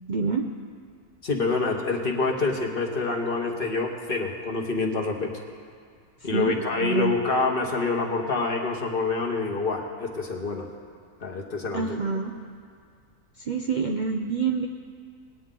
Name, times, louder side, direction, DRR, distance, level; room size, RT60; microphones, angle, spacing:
voice 1, 0.1-0.5 6.3-7.1 11.7-12.3 13.4-14.7, right 5 dB, 85° right, 2 dB, 0.4 m, -27 dB
voice 2, 1.2-5.3 6.2-10.7 11.2-12.0, left 3 dB, 40° left, 1 dB, 1.2 m, -27 dB
20.0 x 9.4 x 3.8 m, 2.1 s
omnidirectional pair, 1.6 m